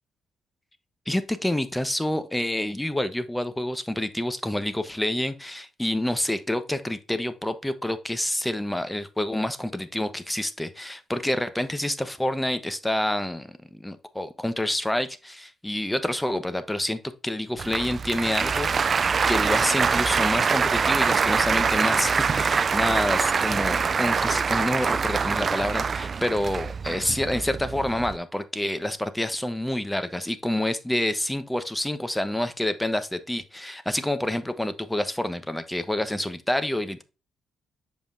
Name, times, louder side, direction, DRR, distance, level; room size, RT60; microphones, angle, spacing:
voice 1, 1.1-37.0, left 1 dB, 10° left, 1.0 m, -28 dB
Applause, 17.6-28.2, right 5 dB, 50° right, 0.3 m, -24 dB
7.2 x 5.2 x 2.6 m
supercardioid pair, 65°, 0 cm